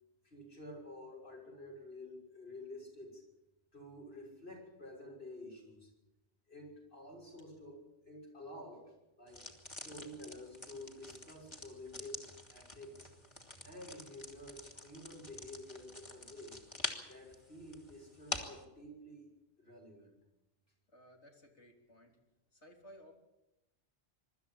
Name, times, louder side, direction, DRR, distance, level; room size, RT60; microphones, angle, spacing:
voice 1, 0.2-3.2 3.7-5.9 6.5-13.2 13.6-16.6 17.1-19.3 19.6-20.2, left 1 dB, 60° left, -1 dB, 6.7 m, -50 dB
sound 1, 9.3-18.6, left 1 dB, 25° left, 2.4 m, -46 dB
voice 2, 20.9-22.2 22.5-23.1, equal, 90° left, 2 dB, 3.8 m, -58 dB
24.0 x 13.0 x 8.9 m, 0.98 s
omnidirectional pair, 1.1 m